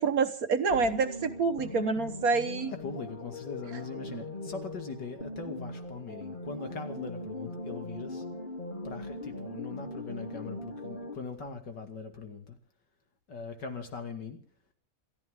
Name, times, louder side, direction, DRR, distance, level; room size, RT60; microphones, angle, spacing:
voice 1, 0.0-2.7, right 4 dB, 60° right, 9 dB, 1.4 m, -27 dB
sound 1, 0.7-11.2, left 1 dB, 30° left, 3.0 m, -40 dB
voice 2, 2.8-8.2 8.8-12.6 13.3-14.4, left 4 dB, 85° left, 6 dB, 3.1 m, -41 dB
28.5 x 13.5 x 3.7 m, 0.41 s
omnidirectional pair, 1.8 m